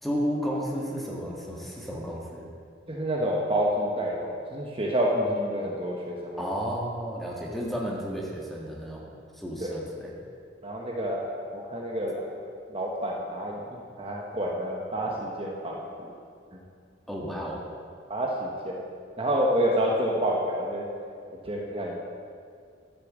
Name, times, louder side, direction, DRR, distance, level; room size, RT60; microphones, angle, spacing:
voice 1, 0.0-2.5 6.4-9.1 9.3-10.3 17.1-17.7, equal, ahead, -3 dB, 1.6 m, -32 dB
voice 2, 2.9-6.5 9.6-9.8 10.6-11.2 11.5-12.3 12.7-16.1 16.5-16.6 18.1-18.8 19.2-20.9 21.4-22.0, equal, 30° right, -2 dB, 1.1 m, -28 dB
11.5 x 6.9 x 7.3 m, 2.3 s
head